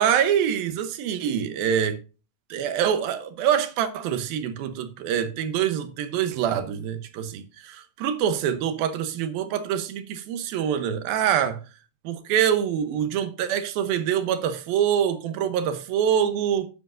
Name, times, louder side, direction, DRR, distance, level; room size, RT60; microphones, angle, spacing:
voice 1, 0.0-2.0 2.5-11.6 12.0-16.7, right 9 dB, 85° right, 2.8 m, -25 dB
10.5 x 9.6 x 2.6 m
omnidirectional pair, 4.1 m